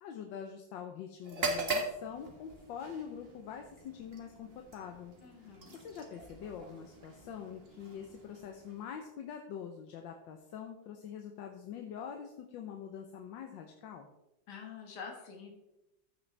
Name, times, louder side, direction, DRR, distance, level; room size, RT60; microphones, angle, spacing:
voice 1, 0.0-14.1, left 8 dB, 90° left, 3 dB, 1.5 m, -45 dB
sound 1, 1.2-9.1, right 3 dB, 35° right, 1.3 m, -41 dB
voice 2, 5.2-5.8 14.5-15.5, left 6 dB, 65° left, 2 dB, 2.1 m, -46 dB
14.5 x 6.1 x 3.3 m, 0.93 s
omnidirectional pair, 2.0 m